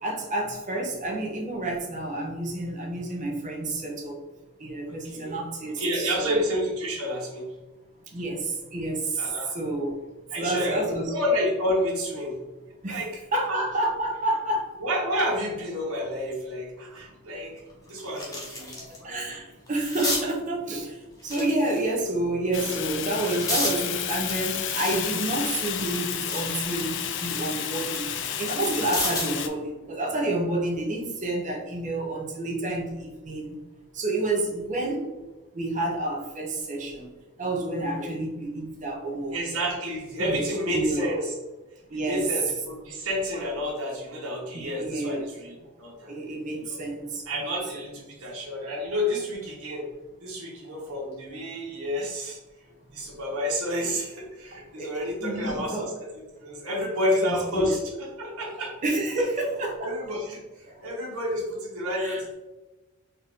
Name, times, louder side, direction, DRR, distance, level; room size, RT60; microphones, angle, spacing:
voice 1, 0.0-4.2 4.6-6.4 8.1-10.0 10.4-11.1 12.8-13.0 13.3-14.8 18.7-33.5 33.9-35.1 35.5-37.1 37.4-39.4 40.2-40.4 40.7-41.1 41.9-42.3 44.5-45.2 46.1-47.5 54.7-54.9 55.2-55.9 57.2-57.7 58.8-59.9 60.7-60.8 62.0-62.2, right 2 dB, 35° right, 0 dB, 0.8 m, -29 dB
voice 2, 4.8-5.3 5.8-7.5 9.2-9.6 10.3-12.5 12.9-13.6 14.8-19.2 38.0-38.1 39.3-41.3 41.9-46.1 46.6-46.8 47.2-49.9 50.2-52.4 52.9-56.1 56.4-57.8 58.2-58.7 59.2-59.3 59.8-62.3, equal, 75° right, -3 dB, 1.3 m, -30 dB
sound 1, 17.0-17.1 17.5-19.0 19.3-20.3 21.2-22.1 22.7-23.8 24.3-26.5 26.9-29.4 30.8-31.0, left 2 dB, 15° left, 1.0 m, -33 dB
Fire, 22.5-29.5, left 9 dB, 55° left, 0.4 m, -31 dB
4.2 x 2.6 x 3.5 m, 1.1 s
head